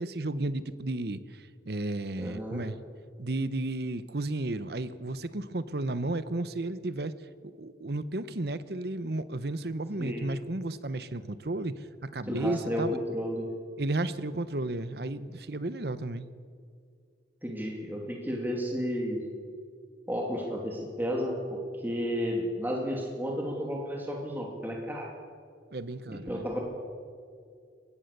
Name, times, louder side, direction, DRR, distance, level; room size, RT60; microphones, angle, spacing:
voice 1, 0.0-2.8 3.2-7.1 7.4-13.0 13.8-16.2 25.7-26.5, right 2 dB, 55° right, 14 dB, 0.9 m, -33 dB
voice 2, 2.2-2.6 10.0-10.3 12.3-13.5 17.4-19.3 20.1-25.1 26.1-26.6, equal, 10° right, 0 dB, 2.8 m, -32 dB
23.0 x 18.5 x 6.8 m, 2.2 s
head